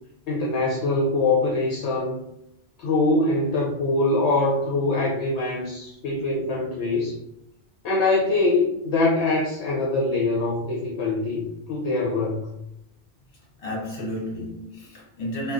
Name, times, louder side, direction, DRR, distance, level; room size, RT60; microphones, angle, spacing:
voice 1, 0.3-2.2 2.8-7.2 7.8-12.5, left 2 dB, 75° left, 0.8 m, -23 dB
voice 2, 13.6-15.5, equal, 55° left, 1.2 m, -31 dB
2.9 x 2.1 x 2.5 m
omnidirectional pair, 1.2 m